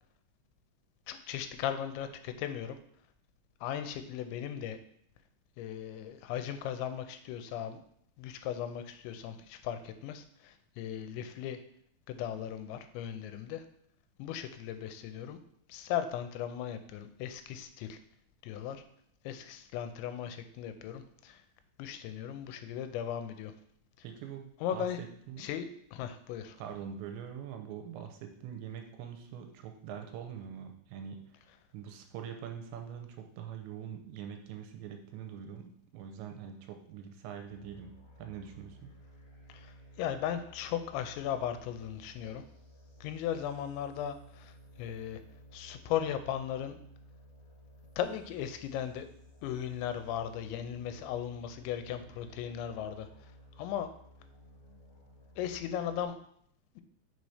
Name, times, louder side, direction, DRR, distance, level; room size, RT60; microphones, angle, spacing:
voice 1, 1.1-2.8 3.6-4.8 5.6-7.8 8.2-11.6 12.1-13.6 14.2-15.4 15.7-18.0 18.4-18.8 19.2-21.4 21.8-23.5 24.6-25.0 25.4-26.6 39.5-42.4 43.0-45.2 45.5-46.8 48.0-49.1 49.4-53.1 53.6-53.9 55.4-56.2 56.8-56.9, left 9 dB, 85° left, 9 dB, 2.9 m, -37 dB
voice 2, 24.0-25.5 26.6-31.2 31.7-37.9 38.2-38.9, right 8 dB, 90° right, 5 dB, 2.9 m, -44 dB
sound 1, 37.5-56.1, equal, 60° left, 2.4 m, -56 dB
6.5 x 4.1 x 4.9 m, 0.67 s
omnidirectional pair, 5.2 m